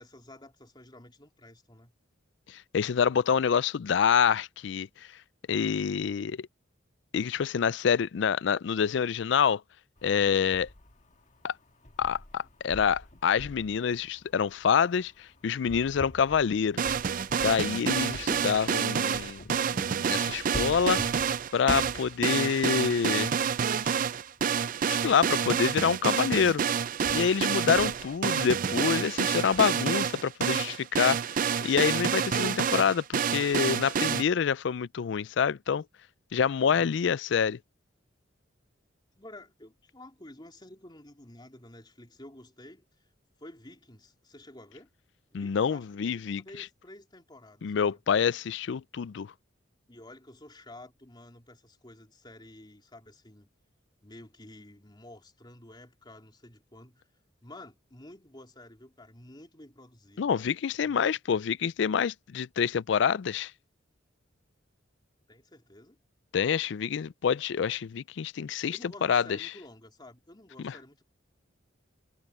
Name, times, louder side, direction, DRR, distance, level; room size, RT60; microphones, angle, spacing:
voice 1, 0.0-1.9 39.2-42.9 43.4-44.9 45.3-48.0 49.9-53.5 54.0-57.0 57.4-60.5 60.8-61.4 65.3-66.0 68.7-71.0, left 1 dB, 25° left, 3.7 m, -51 dB
voice 2, 2.5-4.9 5.5-6.5 7.1-9.6 10.0-10.7 11.4-11.5 12.0-16.9 17.4-19.4 19.7-21.0 21.5-23.3 24.9-26.6 27.1-31.2 31.6-35.8 36.3-37.6 45.3-46.4 47.6-49.3 60.2-63.5 66.3-69.5 70.6-70.7, left 7 dB, 65° left, 0.4 m, -27 dB
sound 1, 10.0-29.7, left 1 dB, 40° left, 1.5 m, -47 dB
sound 2, 16.8-34.2, right 7 dB, 45° right, 0.4 m, -28 dB
head